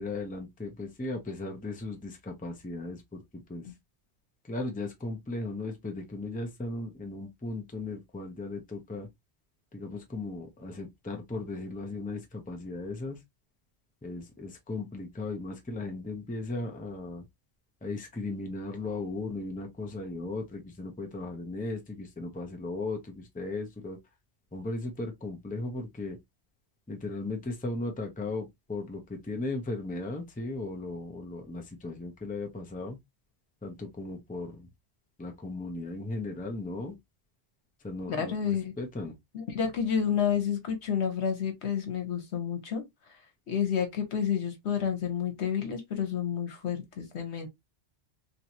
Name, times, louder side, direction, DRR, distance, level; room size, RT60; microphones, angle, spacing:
voice 1, 0.0-3.7 4.4-9.1 9.7-13.2 14.0-17.2 17.8-24.0 24.5-26.2 26.9-33.0 33.6-34.7 35.2-37.0 37.8-39.1, left 2 dB, 10° left, 0.6 m, -37 dB
voice 2, 38.1-38.7 39.3-42.8 43.5-47.5, left 8 dB, 75° left, 1.2 m, -30 dB
3.1 x 3.0 x 2.6 m
omnidirectional pair, 1.1 m